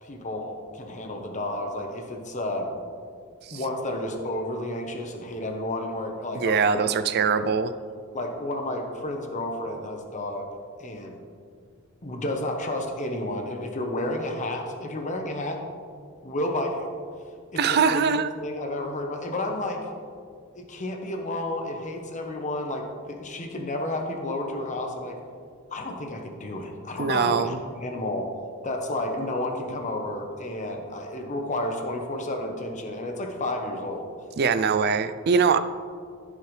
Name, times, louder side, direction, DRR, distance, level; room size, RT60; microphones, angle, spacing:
voice 1, 0.0-2.8 3.5-7.0 7.3-7.5 8.1-10.4 10.8-11.2 12.0-15.6 16.2-16.9 17.5-19.8 20.5-25.2 25.7-28.3 28.6-34.0, left 1 dB, 35° left, 3 dB, 1.0 m, -31 dB
voice 2, 6.3-7.7 17.6-18.3 27.0-27.6 34.4-35.6, right 6 dB, 50° right, 11 dB, 0.4 m, -22 dB
14.0 x 5.6 x 3.3 m, 2.2 s
head